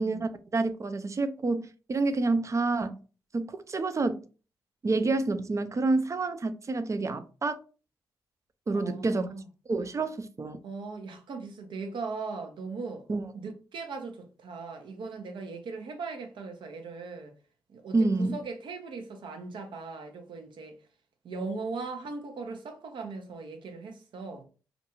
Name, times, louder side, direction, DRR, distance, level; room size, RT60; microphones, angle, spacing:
voice 1, 0.0-3.0 3.3-4.2 4.8-7.6 8.7-9.3 9.7-10.6 13.1-13.2 17.9-18.4, right 3 dB, 35° right, 0.4 m, -28 dB
voice 2, 8.7-9.5 10.6-13.1 13.3-17.3 17.7-20.8 21.2-24.4, right 4 dB, 65° right, 0.7 m, -39 dB
2.5 x 2.2 x 2.9 m
hypercardioid pair, 40°, 9 cm